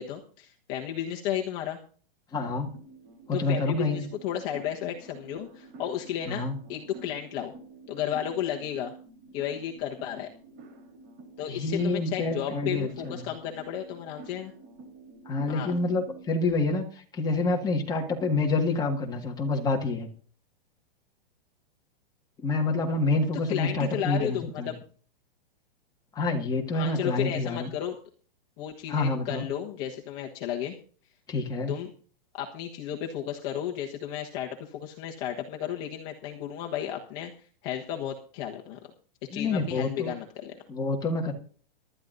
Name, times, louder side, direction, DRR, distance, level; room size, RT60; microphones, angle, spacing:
voice 1, 0.0-1.8 3.3-6.4 6.7-7.5 7.9-8.9 9.3-10.3 11.4-14.5 15.5-15.7 23.5-24.7 26.7-27.9 28.6-30.7 31.7-31.9 32.3-37.3 37.6-38.8 39.3-40.6, left 10 dB, 35° left, 0 dB, 1.3 m, -33 dB
voice 2, 2.3-2.7 3.3-4.0 6.3-6.6 11.5-13.3 15.3-16.8 17.1-20.1 22.4-24.7 26.2-27.7 28.9-29.5 31.3-31.7 39.3-40.1 40.7-41.3, left 3 dB, 15° left, 1 dB, 1.8 m, -27 dB
sound 1, 2.7-16.5, right 3 dB, 35° right, 4.0 m, -49 dB
24.5 x 12.0 x 2.7 m, 0.44 s
hypercardioid pair, 150°, 29 cm